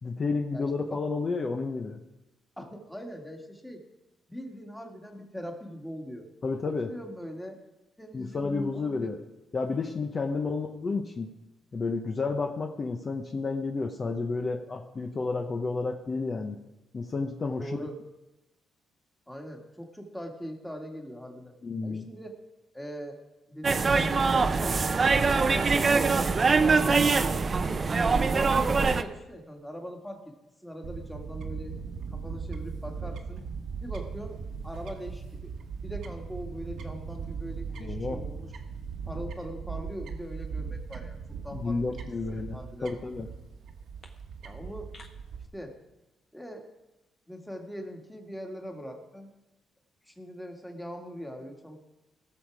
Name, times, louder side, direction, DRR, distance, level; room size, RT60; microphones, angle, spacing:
voice 1, 0.0-2.0 6.4-6.9 8.1-9.2 9.5-11.3 11.7-16.6 16.9-17.9 21.6-22.1 37.8-38.2 41.5-43.3, left 4 dB, 40° left, 4 dB, 0.8 m, -31 dB
voice 2, 0.5-1.0 2.6-3.8 4.3-6.3 6.6-7.6 8.0-9.1 10.3-10.4 17.5-18.0 19.3-21.5 21.8-22.4 22.7-23.2 23.5-27.3 27.6-27.9 28.1-30.4 30.6-31.7 32.1-33.4 33.8-35.5 35.8-38.5 39.1-42.9 44.4-44.9 45.5-45.7 46.3-46.7 47.3-49.3 50.0-51.8, equal, 5° left, 2 dB, 1.9 m, -41 dB
sound 1, 23.6-29.0, right 4 dB, 35° right, 0.6 m, -23 dB
Fowl / Bird, 30.8-45.5, right 5 dB, 70° right, 1.2 m, -39 dB
17.0 x 6.6 x 4.9 m, 1.0 s
cardioid pair, 90°, 0 cm